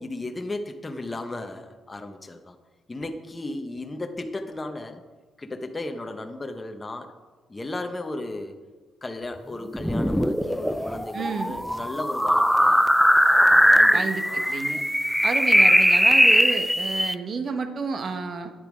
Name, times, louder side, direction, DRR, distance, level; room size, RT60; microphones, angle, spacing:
voice 1, 0.0-2.6 2.9-5.0 5.4-7.1 7.5-8.6 9.0-12.9 13.5-14.0, left 2 dB, 20° left, 5 dB, 0.9 m, -35 dB
sound 1, 9.7-17.1, equal, ahead, 0.5 m, -20 dB
voice 2, 11.1-11.6 13.9-14.8 15.2-18.5, right 4 dB, 50° right, 7 dB, 1.3 m, -30 dB
10.5 x 9.3 x 5.0 m, 1.3 s
cardioid pair, 90°, 0 cm